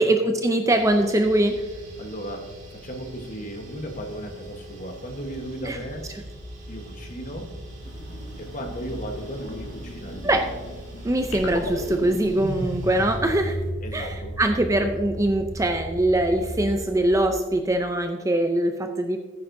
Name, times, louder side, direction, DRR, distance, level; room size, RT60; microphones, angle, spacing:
voice 1, 0.0-1.5 5.6-5.8 10.2-10.5 11.0-13.6 13.9-19.2, right 1 dB, 15° right, 6 dB, 0.5 m, -22 dB
sound 1, 0.7-13.2, right 1 dB, 35° right, 2.2 m, -41 dB
voice 2, 2.0-6.1 6.7-7.5 8.4-10.4 13.8-14.7, equal, 35° left, 4 dB, 1.2 m, -36 dB
sound 2, 7.8-13.7, equal, 55° left, 1.8 m, -44 dB
sound 3, 11.3-17.8, equal, 80° left, 2.8 m, -34 dB
14.5 x 9.4 x 2.7 m, 1.4 s
head